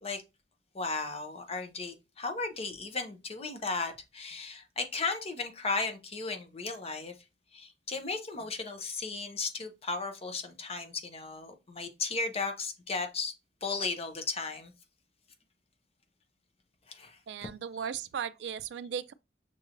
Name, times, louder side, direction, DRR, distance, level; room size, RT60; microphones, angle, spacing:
voice 1, 0.7-7.1 7.5-13.3 13.6-14.7 16.9-17.9, left 4 dB, 35° left, 0.8 m, -35 dB
voice 2, 17.3-19.1, right 8 dB, 70° right, 0.3 m, -36 dB
6.0 x 3.0 x 2.6 m
head